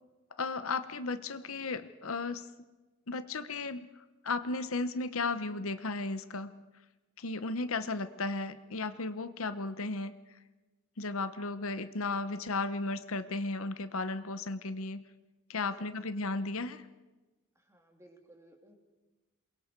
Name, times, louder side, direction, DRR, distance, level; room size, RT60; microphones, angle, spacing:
voice 1, 0.4-2.5 3.1-6.6 7.2-10.1 11.0-15.0 15.5-16.9, left 3 dB, 70° left, 11 dB, 1.0 m, -35 dB
voice 2, 15.8-16.1 17.5-18.8, right 1 dB, 15° right, 2 dB, 3.0 m, -59 dB
28.0 x 22.5 x 4.6 m, 1.1 s
head